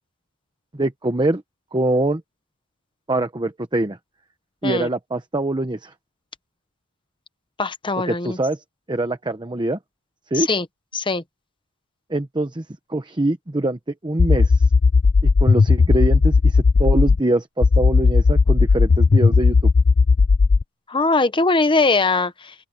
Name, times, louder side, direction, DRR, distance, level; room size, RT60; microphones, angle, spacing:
voice 1, 0.7-1.4 1.7-2.2 3.1-4.0 4.6-5.9 8.1-9.8 10.3-10.5 12.1-12.6 12.9-14.7 15.2-19.7, right 2 dB, 20° right, 1.0 m, -23 dB
voice 2, 7.6-8.4 10.4-10.7 10.9-11.2 20.9-22.5, left 3 dB, 20° left, 0.9 m, -20 dB
sound 1, 14.2-17.2 17.6-20.6, left 4 dB, 35° left, 0.4 m, -15 dB
open air
head